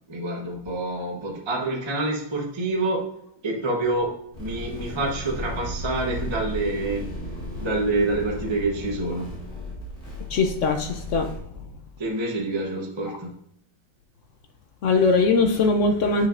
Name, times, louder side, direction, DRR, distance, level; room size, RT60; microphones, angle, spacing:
voice 1, 0.1-3.1 3.4-7.1 7.6-9.3 12.0-13.3, right 2 dB, 25° right, 0 dB, 0.6 m, -27 dB
sound 1, 4.3-11.4, equal, 30° left, 2.3 m, -35 dB
voice 2, 10.3-11.3 14.8-16.3, left 3 dB, 70° left, 5 dB, 0.7 m, -21 dB
8.3 x 5.1 x 2.5 m, 0.71 s
omnidirectional pair, 2.0 m